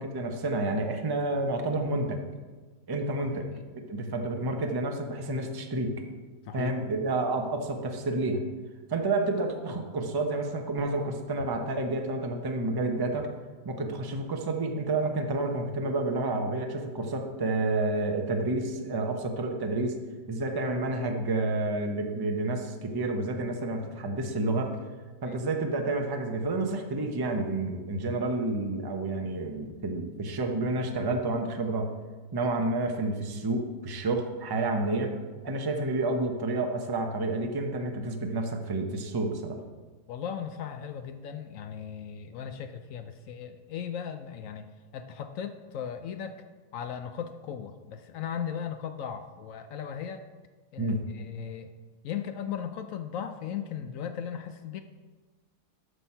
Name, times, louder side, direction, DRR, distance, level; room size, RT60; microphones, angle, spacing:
voice 1, 0.0-2.2 2.9-3.5 3.7-6.0 6.5-8.4 8.9-13.3 13.6-20.0 20.3-24.8 25.2-31.9 32.3-35.1 35.4-39.6 50.8-51.0, right 2 dB, 35° right, 4 dB, 0.3 m, -29 dB
voice 2, 40.1-44.7 44.9-46.4 46.7-50.2 50.7-51.7 52.0-54.8, left 8 dB, 70° left, 8 dB, 0.8 m, -37 dB
8.0 x 6.1 x 5.5 m, 1.3 s
omnidirectional pair, 1.8 m